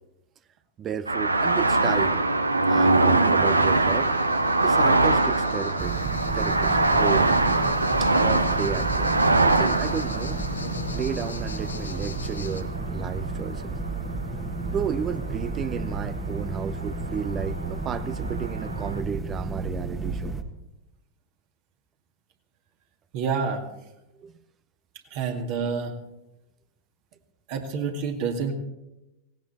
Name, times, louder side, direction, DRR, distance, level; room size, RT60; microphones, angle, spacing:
voice 1, 0.8-2.2 2.7-4.1 4.6-6.0 6.3-7.3 8.0-9.2 9.5-10.4 10.9-13.7 14.7-20.4 24.2-24.3, right 7 dB, 25° right, 14 dB, 0.7 m, -32 dB
sound 1, 1.1-14.3 14.6-15.4 15.6-16.4 16.7-19.0, right 2 dB, 80° right, 0.9 m, -23 dB
sound 2, 3.4-12.6, left 3 dB, 75° left, 1.5 m, -40 dB
sound 3, 5.8-20.4, right 3 dB, 10° right, 1.5 m, -32 dB
voice 2, 23.1-23.6 25.1-25.9 27.5-28.5, right 5 dB, 50° right, 3 dB, 2.2 m, -28 dB
17.5 x 17.0 x 4.3 m, 0.96 s
figure-of-eight pair, 90°, 0 cm